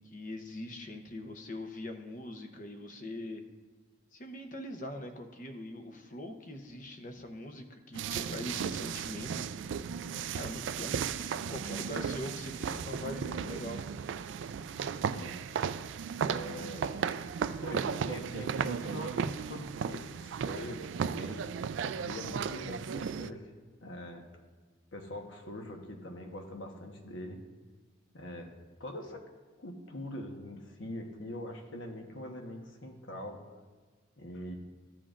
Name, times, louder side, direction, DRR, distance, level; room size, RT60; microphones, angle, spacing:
voice 1, 0.0-3.4 4.1-9.5 10.3-13.8, left 1 dB, 40° left, 6 dB, 0.8 m, -42 dB
sound 1, 7.9-23.3, right 7 dB, 70° right, 0.3 m, -35 dB
voice 2, 16.2-16.9 17.6-21.5 21.8-23.5 23.8-24.3 24.9-27.4 28.1-28.5 28.8-29.2 29.6-33.4 34.2-34.5, left 1 dB, 70° left, 2 dB, 1.2 m, -43 dB
14.0 x 7.5 x 2.5 m, 1.4 s
head